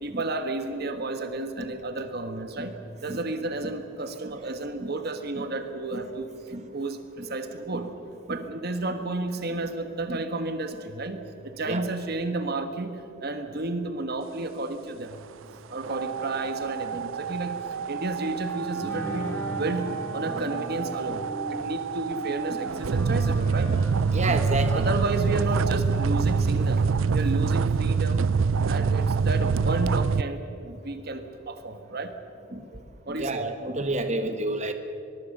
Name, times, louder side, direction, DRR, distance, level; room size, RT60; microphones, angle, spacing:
voice 1, 0.0-2.7 3.0-6.3 6.7-7.9 8.3-15.1 15.7-17.6 17.9-21.2 21.5-23.7 24.7-26.9 27.1-28.2 28.7-30.4 30.8-32.1 33.1-33.5, right 2 dB, 50° right, 8 dB, 1.4 m, -32 dB
sound 1, 15.8-30.2, right 5 dB, 75° right, 0.5 m, -26 dB
Wind instrument woodwind instrument, 18.4-25.6, left 1 dB, 10° left, 2.6 m, -42 dB
Guitar, 18.8-23.9, equal, 35° left, 4.7 m, -40 dB
voice 2, 24.1-24.8 28.2-28.3 28.8-28.9 30.6-30.8 32.5-32.6 33.1-34.7, right 2 dB, 35° right, 7 dB, 1.5 m, -30 dB
23.5 x 22.5 x 6.7 m, 2.9 s
head